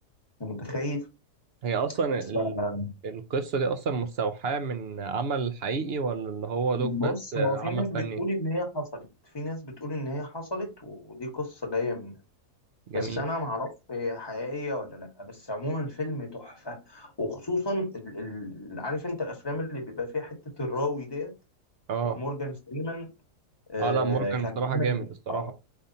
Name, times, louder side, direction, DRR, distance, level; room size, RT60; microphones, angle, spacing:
voice 1, 0.4-1.0 2.3-2.9 6.7-9.1 9.3-12.2 12.9-21.3 22.0-23.1 23.7-25.0 25.3-25.5, left 1 dB, 15° left, 1.1 m, -32 dB
voice 2, 1.6-2.5 3.0-8.2 12.9-13.2 21.9-22.2 23.8-25.5, right 5 dB, 55° right, 0.7 m, -29 dB
5.1 x 3.4 x 2.7 m
omnidirectional pair, 1.7 m